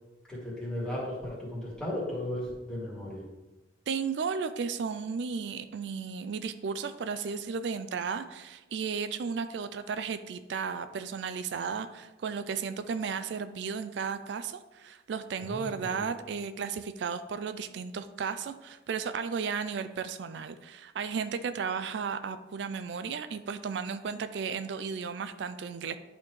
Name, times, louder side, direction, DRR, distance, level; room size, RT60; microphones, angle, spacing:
voice 1, 0.3-3.2 15.4-16.0, left 1 dB, 5° left, -7 dB, 2.3 m, -36 dB
voice 2, 3.9-26.0, right 6 dB, 70° right, 11 dB, 0.4 m, -34 dB
11.0 x 4.3 x 3.2 m, 1.1 s
head